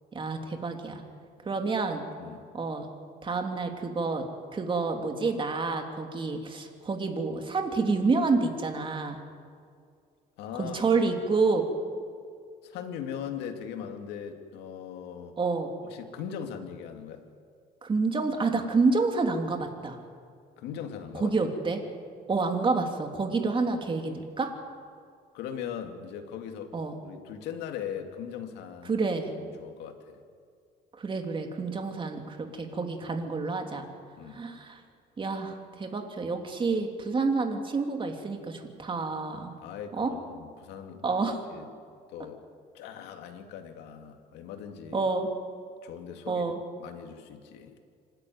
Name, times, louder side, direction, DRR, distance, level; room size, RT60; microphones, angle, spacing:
voice 1, 0.1-1.0 1.4-2.0 2.5-2.9 3.2-4.2 4.5-9.2 10.6-11.6 15.4-15.7 17.8-20.0 21.1-21.8 22.3-24.5 26.7-26.9 28.8-29.3 31.0-33.9 34.3-34.8 35.2-39.5 39.9-40.1 41.0-41.4 44.9-45.3 46.3-46.6, right 4 dB, 30° right, 4 dB, 3.0 m, -28 dB
voice 2, 10.4-11.2 12.6-15.4 15.9-17.3 20.6-21.3 25.3-26.7 27.0-28.9 29.4-30.2 34.2-34.4 39.6-41.0 41.5-41.7 42.1-42.4 42.7-45.1 45.8-47.8, left 8 dB, 90° left, 5 dB, 2.4 m, -40 dB
26.0 x 13.0 x 9.6 m, 2.2 s
cardioid pair, 110°, 17 cm